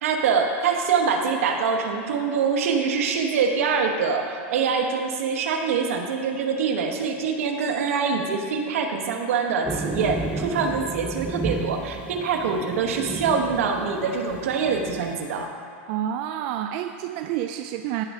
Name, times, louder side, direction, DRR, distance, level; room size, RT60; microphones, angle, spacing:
voice 1, 0.0-15.5, right 5 dB, 80° right, 4 dB, 1.1 m, -24 dB
sound 1, 9.7-15.2, right 3 dB, 10° right, 0.7 m, -33 dB
voice 2, 15.9-18.0, right 11 dB, 50° right, 6 dB, 0.3 m, -29 dB
16.0 x 5.4 x 3.6 m, 2.4 s
supercardioid pair, 140°, 7 cm